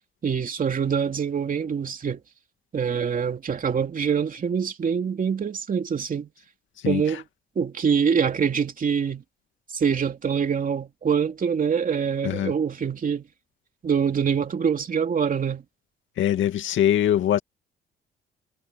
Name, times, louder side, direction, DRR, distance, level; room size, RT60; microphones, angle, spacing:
voice 1, 0.2-2.2 2.7-6.3 6.8-7.2 7.6-9.2 9.7-13.2 13.8-15.6, right 6 dB, 45° right, 2.9 m, -25 dB
voice 2, 16.2-17.4, left 11 dB, 75° left, 2.2 m, -22 dB
cardioid pair, 90°, 20 cm